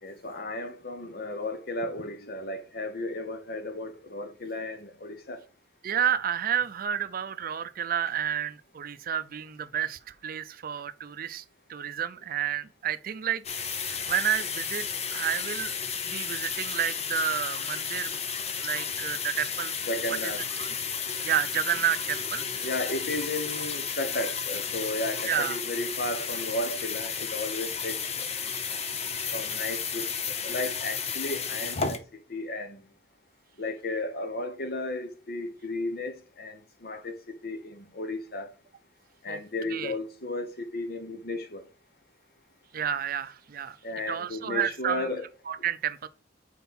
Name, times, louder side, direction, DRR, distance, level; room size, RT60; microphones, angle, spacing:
voice 1, 0.0-5.4 19.9-20.4 22.6-28.5 29.3-32.9 33.6-38.5 39.2-41.6 43.8-45.2, left 2 dB, 55° left, 1.1 m, -34 dB
voice 2, 5.8-11.4 11.7-13.4 13.8-15.8 16.0-18.2 18.6-19.7 20.1-20.7 21.2-22.5 25.2-25.6 39.3-39.4 39.7-40.0 42.7-43.8 44.1-45.1 45.5-46.1, right 9 dB, 55° right, 0.4 m, -30 dB
sound 1, 13.4-32.0, left 6 dB, 35° left, 0.7 m, -33 dB
5.5 x 4.5 x 4.3 m
head